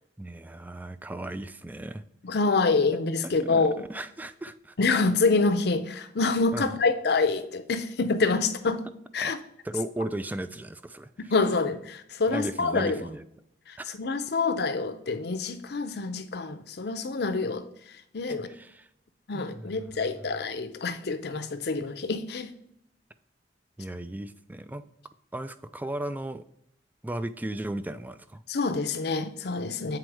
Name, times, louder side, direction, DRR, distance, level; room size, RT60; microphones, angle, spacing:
voice 1, 0.2-2.0 3.4-4.8 6.5-6.7 9.2-9.3 9.6-11.3 12.3-13.3 13.8-14.0 18.5-18.9 19.3-19.9 23.8-24.8 25.3-26.4 27.0-28.4, right 1 dB, 10° right, 0.3 m, -36 dB
voice 2, 2.2-3.8 4.8-8.8 9.1-9.4 11.2-13.0 13.7-17.6 18.1-18.5 19.3-22.5 28.5-30.0, left 3 dB, 60° left, 0.6 m, -26 dB
7.7 x 4.3 x 4.7 m
head